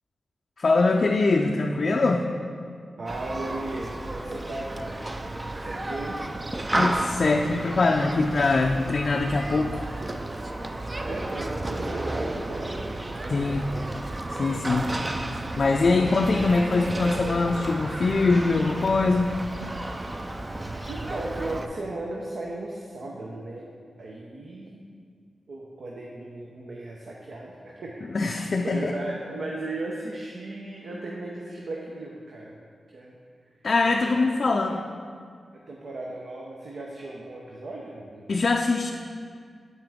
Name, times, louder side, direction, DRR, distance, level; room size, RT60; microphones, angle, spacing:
voice 1, 0.6-2.2 6.7-9.9 13.3-13.7 14.3-14.9 15.6-19.3 28.1-28.9 33.6-34.8 38.3-38.9, left 3 dB, 60° left, 2 dB, 0.4 m, -23 dB
voice 2, 3.0-5.0 5.6-6.2 11.0-12.7 13.1-13.9 20.9-23.7 24.0-24.8 25.5-32.6 32.9-33.2 33.8-34.8 35.5-38.2, right 2 dB, 70° right, -2 dB, 0.7 m, -36 dB
Human group actions, 3.1-21.7, right 1 dB, 30° right, 0.5 m, -32 dB
7.7 x 5.8 x 3.5 m, 2.1 s
cardioid pair, 45°, 0 cm